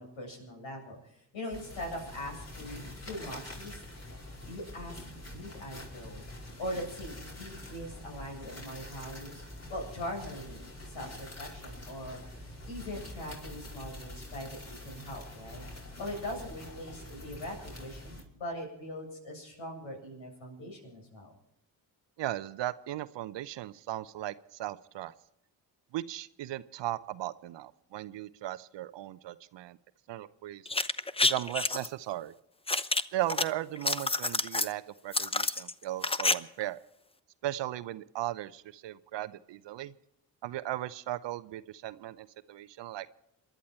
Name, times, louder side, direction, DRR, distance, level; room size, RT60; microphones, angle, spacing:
voice 1, 0.0-3.8 4.5-9.4 9.7-21.3, left 1 dB, 65° left, 0 dB, 7.8 m, -41 dB
sound 1, 1.5-18.2, left 1 dB, 30° left, 5.0 m, -45 dB
voice 2, 22.2-25.1 25.9-29.8 30.1-30.6 31.2-32.3 33.1-36.8 37.4-39.9 40.4-43.1, right 14 dB, 60° right, 16 dB, 0.8 m, -37 dB
sound 2, 30.7-31.9 32.7-33.4 33.8-34.7 35.1-36.3 36.6-36.7, left 3 dB, 10° left, 0.8 m, -28 dB
27.5 x 11.5 x 4.4 m, 0.84 s
hypercardioid pair, 45°, 49 cm